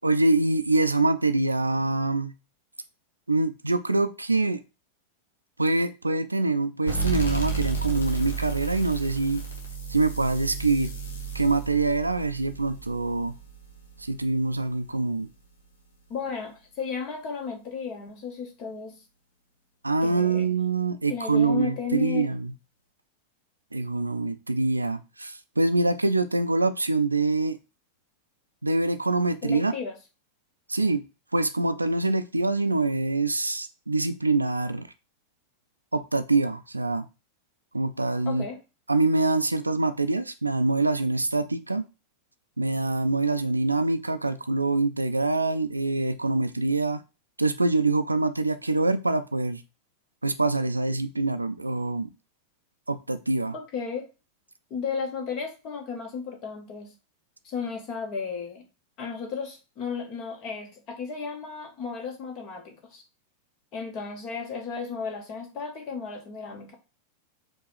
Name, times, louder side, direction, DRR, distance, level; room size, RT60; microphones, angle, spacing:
voice 1, 0.0-2.3 3.3-4.6 5.6-9.4 9.9-10.9 11.3-13.3 14.0-15.3 19.8-22.5 23.7-27.6 28.6-29.7 30.7-31.0 31.3-34.9 35.9-37.1 37.7-38.5 38.9-41.9 42.6-47.0 47.4-49.6 50.2-52.1 52.9-53.5, right 3 dB, 85° right, 0.4 m, -25 dB
sound 1, 6.9-14.1, right 4 dB, 70° left, 1.2 m, -32 dB
voice 2, 16.1-19.0 20.0-20.5 21.1-22.3 29.4-29.9 38.3-38.6 53.5-54.1 54.7-56.9 57.4-58.6 59.0-63.0 63.7-66.8, left 5 dB, 40° left, 1.3 m, -34 dB
4.8 x 2.4 x 4.0 m
figure-of-eight pair, 90°, 0 cm